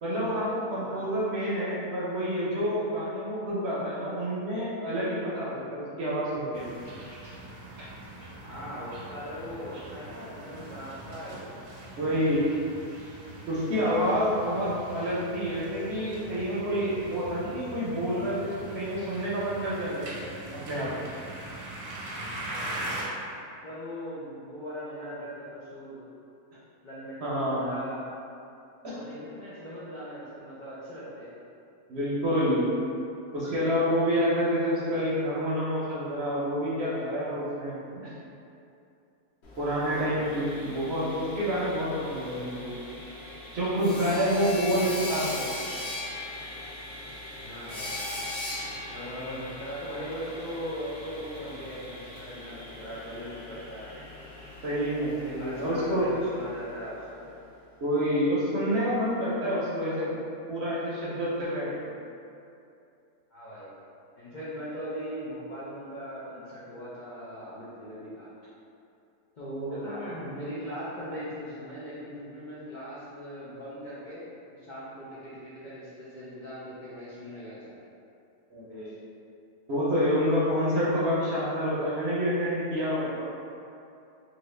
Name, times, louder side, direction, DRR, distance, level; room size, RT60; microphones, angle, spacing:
voice 1, 0.0-6.6 7.8-7.9 12.0-12.5 13.5-20.9 27.2-27.7 28.8-29.0 31.9-32.6 33.3-38.1 39.6-42.7 43.5-45.5 54.6-56.1 57.8-60.1 60.5-61.7 78.5-78.9 79.7-83.3, equal, 60° right, -8 dB, 0.7 m, -28 dB
voice 2, 0.7-1.3 8.4-11.5 22.4-22.8 23.6-26.1 26.8-28.0 28.9-31.3 39.8-40.2 44.6-44.9 47.4-48.2 48.9-54.1 55.4-57.3 63.3-63.7 64.2-68.3 69.3-77.8, equal, 75° left, -10 dB, 0.4 m, -39 dB
sound 1, 6.5-23.0, right 1 dB, 85° right, 1.1 m, -42 dB
Sawing, 39.4-57.2, left 1 dB, 55° left, 0.9 m, -40 dB
2.8 x 2.7 x 3.1 m, 2.6 s
omnidirectional pair, 1.6 m